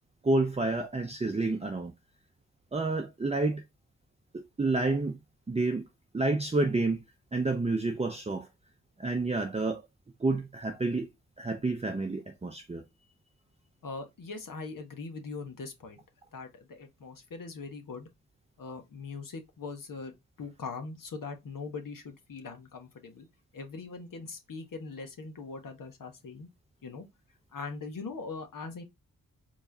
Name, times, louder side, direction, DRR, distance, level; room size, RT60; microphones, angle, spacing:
voice 1, 0.2-1.9 2.7-3.6 4.3-5.2 5.5-5.8 6.1-7.0 7.3-8.5 9.0-9.8 10.2-11.1 11.4-12.8, right 2 dB, 20° right, 0.6 m, -29 dB
voice 2, 13.8-16.0 16.3-18.1 18.6-23.3 23.5-26.5 26.8-27.1 27.5-28.8, left 4 dB, 65° left, 1.4 m, -41 dB
4.6 x 3.1 x 2.8 m
cardioid pair, 60°, 35 cm